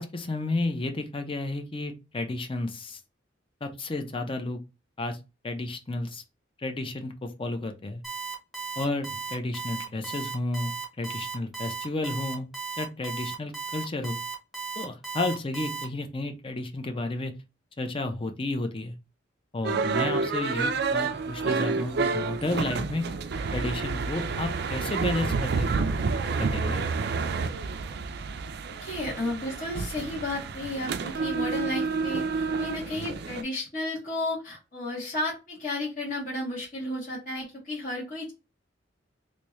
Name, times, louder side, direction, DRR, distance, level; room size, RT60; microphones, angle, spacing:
voice 1, 0.0-3.0 3.6-4.6 5.0-5.2 5.4-6.2 6.6-8.0 8.8-12.5 12.8-14.2 14.8-17.3 17.8-18.9 19.5-23.0 23.5-25.8 26.4-26.8, left 2 dB, 30° left, 6 dB, 0.6 m, -32 dB
Alarm, 8.0-15.8, right 5 dB, ahead, 1.0 m, -35 dB
sound 1, 19.6-33.4, right 4 dB, 55° right, 0.4 m, -29 dB
voice 2, 28.8-38.3, left 2 dB, 45° left, -5 dB, 1.6 m, -33 dB
3.4 x 2.6 x 3.1 m, 0.27 s
head